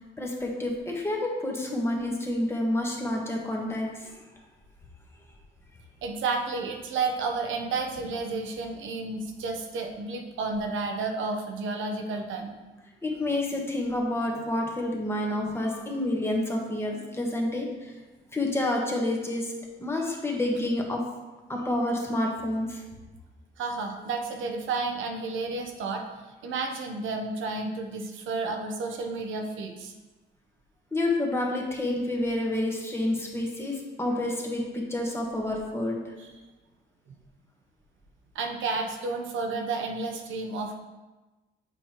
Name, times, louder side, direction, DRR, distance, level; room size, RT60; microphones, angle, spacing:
voice 1, 0.2-4.2 13.0-17.9 18.3-19.5 19.8-21.0 21.5-22.8 30.9-36.0, left 1 dB, 10° left, -1 dB, 1.3 m, -29 dB
voice 2, 6.0-12.6 23.6-26.0 26.4-29.9 36.2-36.3 37.1-37.2 38.3-40.8, right 3 dB, 75° right, 3 dB, 0.9 m, -31 dB
7.2 x 5.4 x 3.0 m, 1.2 s
cardioid pair, 90°, 20 cm